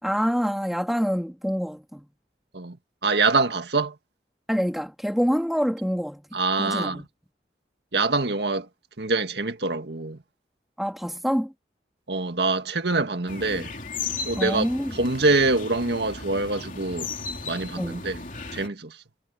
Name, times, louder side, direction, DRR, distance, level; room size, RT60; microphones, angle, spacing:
voice 1, 0.0-2.1 4.5-7.1 10.8-11.5 14.4-14.9 17.8-18.0, equal, ahead, 3.7 m, -26 dB
voice 2, 3.0-3.9 6.3-7.0 7.9-8.7 9.0-10.2 12.1-13.7 14.3-14.7 14.9-17.1 17.5-18.2 18.5-18.9, right 3 dB, 80° right, 1.8 m, -24 dB
sound 1, 13.3-18.7, left 4 dB, 45° left, 3.4 m, -35 dB
head